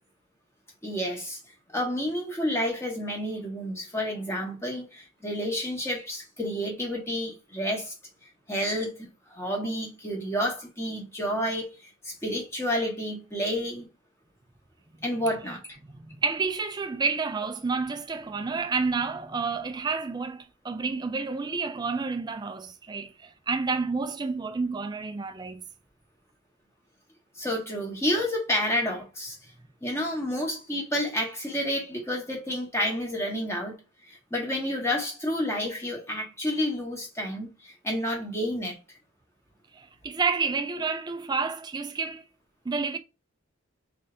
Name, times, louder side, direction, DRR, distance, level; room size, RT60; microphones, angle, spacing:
voice 1, 0.8-1.4 1.7-7.9 8.5-13.9 15.0-15.8 27.3-29.4 29.8-33.7 34.1-39.0, equal, 10° left, 1.1 m, -30 dB
voice 2, 15.9-25.6 39.7-42.2 42.7-43.0, right 4 dB, 20° right, 0.3 m, -30 dB
3.3 x 2.7 x 3.7 m
head